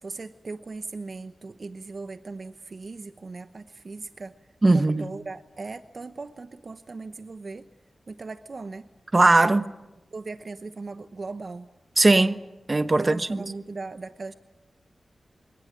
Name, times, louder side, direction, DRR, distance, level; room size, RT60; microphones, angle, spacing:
voice 1, 0.0-4.3 4.7-7.7 8.1-8.9 10.1-11.7 13.0-14.3, right 3 dB, 50° right, 0.9 m, -38 dB
voice 2, 4.6-5.1 9.1-9.7 12.0-12.4 12.7-13.4, right 2 dB, 30° right, 1.2 m, -19 dB
24.5 x 18.5 x 9.7 m
wide cardioid pair, 100°, 0 cm